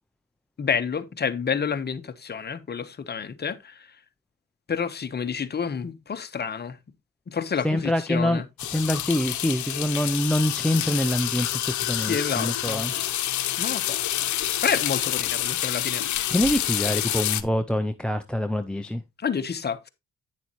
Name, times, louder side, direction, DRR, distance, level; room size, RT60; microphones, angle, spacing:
voice 1, 0.6-4.0 4.7-6.8 7.3-8.5 11.9-12.8 13.6-14.0 14.6-16.1 19.2-19.9, left 6 dB, 35° left, 1.0 m, -29 dB
voice 2, 7.6-8.4 8.7-12.9 16.3-19.0, left 1 dB, 5° left, 0.5 m, -25 dB
sound 1, 8.6-17.4, left 13 dB, 70° left, 0.9 m, -28 dB
9.4 x 6.9 x 3.0 m
cardioid pair, 90°, 30 cm